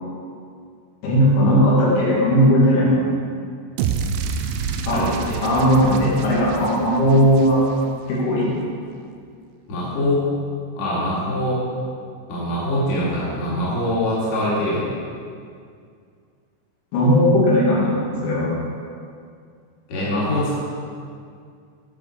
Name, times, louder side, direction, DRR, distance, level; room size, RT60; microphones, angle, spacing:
voice 1, 1.0-3.0 4.9-5.0 5.4-7.6 8.1-8.5 16.9-18.5, equal, 80° left, -7 dB, 4.3 m, -17 dB
sound 1, 3.8-8.0, right 6 dB, 85° right, 2.6 m, -28 dB
voice 2, 4.9-5.4 9.7-10.3 10.8-11.6 12.3-14.9 19.9-20.5, left 1 dB, 50° left, -8 dB, 3.7 m, -23 dB
11.0 x 6.5 x 5.0 m, 2.3 s
omnidirectional pair, 5.3 m